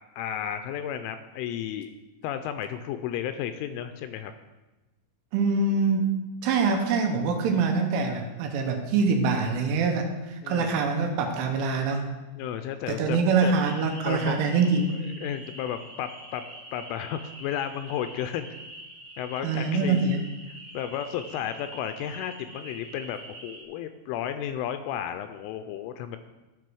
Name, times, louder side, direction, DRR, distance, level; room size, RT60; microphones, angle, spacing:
voice 1, 0.2-1.9 2.2-4.3 10.4-10.8 12.4-13.5 14.1-14.4 15.2-16.4 16.7-18.6 19.2-20.0 20.5-26.2, left 10 dB, 85° left, 9 dB, 2.9 m, -33 dB
voice 2, 5.3-12.0 12.9-14.9 19.4-20.2, right 4 dB, 75° right, 3 dB, 3.4 m, -24 dB
sound 1, 13.6-23.6, right 1 dB, 30° right, 2.5 m, -45 dB
14.0 x 5.5 x 6.3 m, 1.1 s
omnidirectional pair, 5.9 m